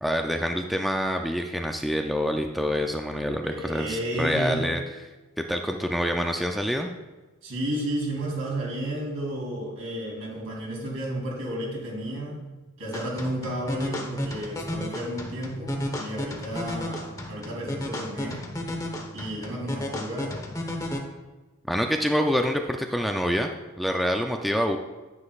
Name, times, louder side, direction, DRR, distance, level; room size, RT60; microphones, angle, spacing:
voice 1, 0.0-4.8 5.4-6.9 21.7-23.5 23.8-24.8, equal, ahead, 3 dB, 0.3 m, -26 dB
voice 2, 3.4-4.7 7.4-12.5 12.8-18.5 19.1-20.4, right 1 dB, 70° right, -3 dB, 3.1 m, -32 dB
sound 1, 12.9-21.0, left 1 dB, 15° left, 0.9 m, -33 dB
10.0 x 9.6 x 2.4 m, 1.2 s
head